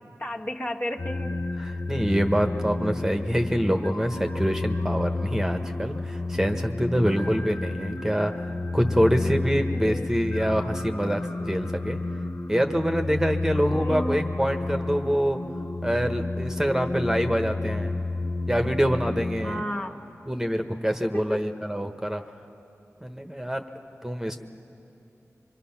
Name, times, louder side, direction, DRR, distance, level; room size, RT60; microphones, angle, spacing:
voice 1, 0.2-1.4 7.2-7.3 9.2-10.1 13.7-14.3 19.4-20.0 21.1-21.4, equal, 35° left, 0 dB, 1.3 m, -33 dB
sound 1, 1.0-19.6, left 2 dB, 50° left, 0.8 m, -31 dB
voice 2, 1.6-12.0 12.5-15.4 15.8-17.9 18.5-19.6 20.3-22.2 23.0-23.6 24.0-24.4, equal, 10° right, 5 dB, 1.2 m, -25 dB
24.5 x 23.5 x 5.9 m, 2.8 s
cardioid pair, 40°, 6 cm